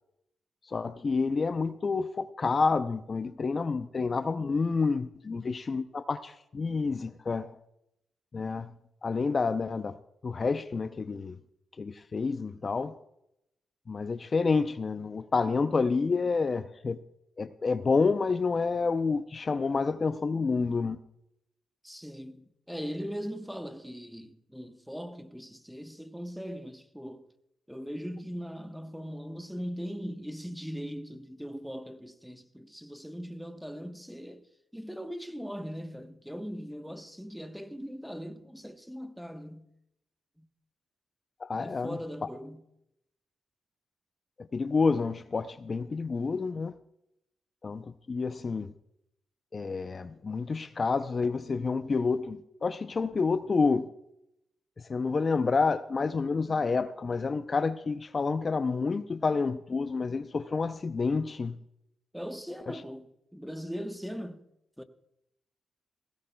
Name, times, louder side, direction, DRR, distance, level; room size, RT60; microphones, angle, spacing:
voice 1, 0.7-7.6 8.3-8.7 9.0-10.0 10.2-11.4 11.8-12.9 13.9-17.0 17.4-21.0 41.4-42.0 44.5-46.8 47.6-48.7 49.5-53.9 54.9-61.6 62.7-62.8, left 4 dB, 45° left, 0.5 m, -29 dB
voice 2, 21.8-27.3 27.7-34.5 34.7-39.7 40.4-40.5 41.6-42.6 62.1-64.4 64.8-64.9, equal, ahead, 1.1 m, -40 dB
17.0 x 15.5 x 2.3 m
cardioid pair, 60°, 0 cm